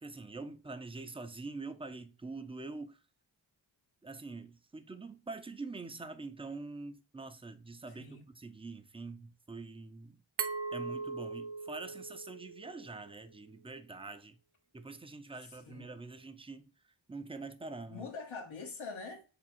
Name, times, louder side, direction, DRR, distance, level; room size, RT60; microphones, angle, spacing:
voice 1, 0.0-3.0 4.0-10.2 10.7-14.4 14.7-16.7 17.1-18.1, right 3 dB, 10° right, 0.5 m, -45 dB
voice 2, 7.9-8.3 15.4-16.0 17.9-19.2, left 4 dB, 80° left, 1.1 m, -44 dB
Glass, 10.4-13.2, right 5 dB, 55° right, 0.7 m, -39 dB
3.6 x 2.4 x 4.2 m
cardioid pair, 60°, 47 cm